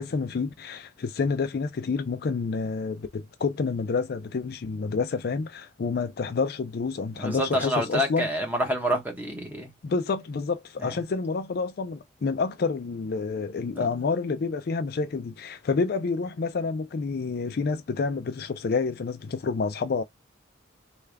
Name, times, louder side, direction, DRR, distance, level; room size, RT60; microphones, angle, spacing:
voice 1, 0.0-8.3 9.8-20.0, left 4 dB, 55° left, 0.4 m, -28 dB
voice 2, 7.2-9.7 13.8-13.9, equal, 10° right, 1.0 m, -27 dB
3.3 x 2.3 x 3.3 m
head